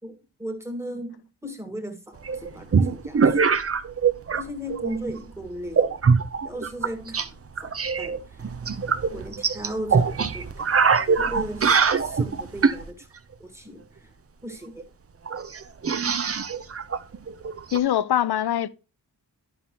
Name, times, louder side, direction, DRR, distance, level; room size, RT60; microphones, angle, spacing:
voice 1, 0.0-3.6 4.3-6.0 6.4-7.4 7.6-8.4 9.1-10.8 11.2-13.1 13.4-14.1 14.4-14.8, equal, 5° right, 1.6 m, -37 dB
sound 1, 2.2-4.4 4.7-5.2 5.7-7.3 7.6-12.8 14.5-14.6 14.8-14.9 15.3-17.8, right 5 dB, 35° right, 0.6 m, -23 dB
voice 2, 17.7-18.7, left 11 dB, 70° left, 0.5 m, -23 dB
11.0 x 5.5 x 2.9 m
wide cardioid pair, 110°, 41 cm